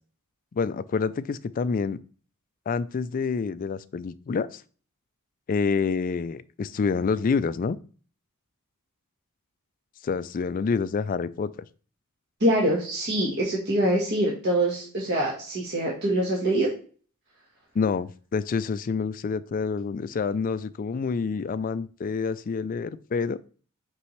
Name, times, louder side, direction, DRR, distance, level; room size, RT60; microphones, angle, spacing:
voice 1, 0.5-2.0 2.7-4.6 5.5-7.8 10.0-11.5 17.7-23.4, left 5 dB, 40° left, 16 dB, 0.3 m, -27 dB
voice 2, 12.4-16.7, right 1 dB, 50° right, -3 dB, 1.4 m, -24 dB
5.7 x 5.3 x 3.2 m, 0.40 s
head